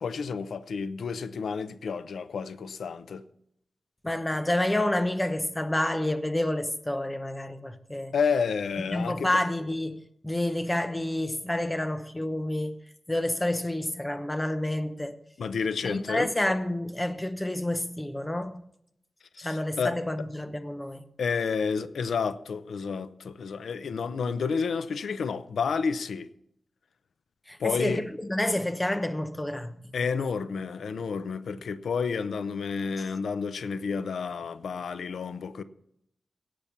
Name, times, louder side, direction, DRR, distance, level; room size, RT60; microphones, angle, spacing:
voice 1, 0.0-3.2 8.1-9.3 15.4-16.3 19.4-20.0 21.2-26.3 27.6-28.0 29.9-35.6, left 5 dB, 90° left, 0.7 m, -30 dB
voice 2, 4.0-8.1 8.9-12.8 13.1-15.1 15.8-18.6 19.4-21.0 27.5-29.8, left 1 dB, 10° left, 0.9 m, -29 dB
17.0 x 6.9 x 5.9 m
wide cardioid pair, 145°, 0 cm